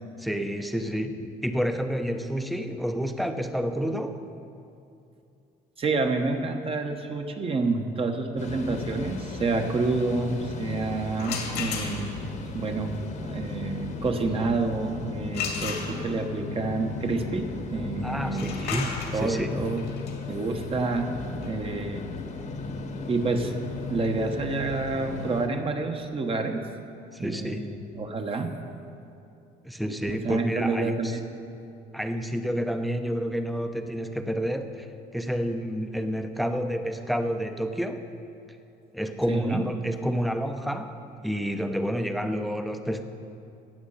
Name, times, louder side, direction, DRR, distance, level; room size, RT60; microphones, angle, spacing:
voice 1, 0.2-4.2 15.5-15.6 18.0-19.6 27.1-27.7 29.6-31.2 31.9-34.9 35.1-38.0 38.9-43.0, equal, ahead, 7 dB, 0.7 m, -29 dB
voice 2, 5.8-12.2 12.5-12.9 13.2-18.6 19.1-19.8 20.3-21.1 21.4-22.1 23.1-23.6 23.9-26.7 27.2-28.5 30.1-31.2 39.3-39.6, right 3 dB, 35° right, 4 dB, 1.1 m, -28 dB
sound 1, 8.4-25.5, left 4 dB, 45° left, 1.1 m, -36 dB
sound 2, 11.1-12.3 15.3-16.4 18.2-23.9, left 6 dB, 85° left, 2.1 m, -36 dB
15.0 x 8.7 x 5.7 m, 2.6 s
cardioid pair, 110°, 17 cm